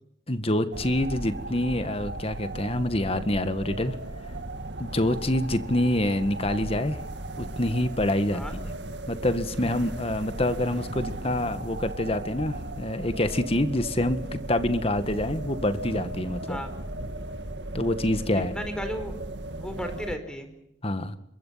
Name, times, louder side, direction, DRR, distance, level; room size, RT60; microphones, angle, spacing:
voice 1, 0.3-4.0 4.8-7.0 7.4-8.7 9.1-16.6 17.7-18.5 20.8-21.2, left 1 dB, 30° left, 10 dB, 1.8 m, -26 dB
sound 1, 0.7-20.2, right 1 dB, 70° right, 2.0 m, -36 dB
voice 2, 18.3-19.1 19.6-20.5, equal, 5° left, 7 dB, 4.5 m, -34 dB
27.0 x 22.5 x 5.8 m, 0.77 s
head